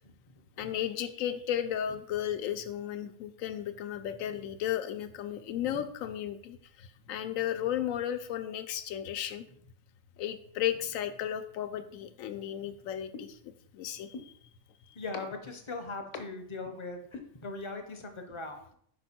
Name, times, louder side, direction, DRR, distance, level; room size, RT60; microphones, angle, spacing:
voice 1, 0.6-9.4 10.2-14.5 14.9-15.0, left 10 dB, 90° left, 9 dB, 1.0 m, -34 dB
sound 1, 13.1-13.2 14.1-14.2 15.1-15.2 16.1-16.2 17.1-17.2, left 4 dB, 70° left, 1.2 m, -38 dB
voice 2, 15.0-18.6, left 3 dB, 35° left, 5 dB, 0.5 m, -40 dB
5.3 x 4.4 x 4.2 m, 0.64 s
omnidirectional pair, 1.4 m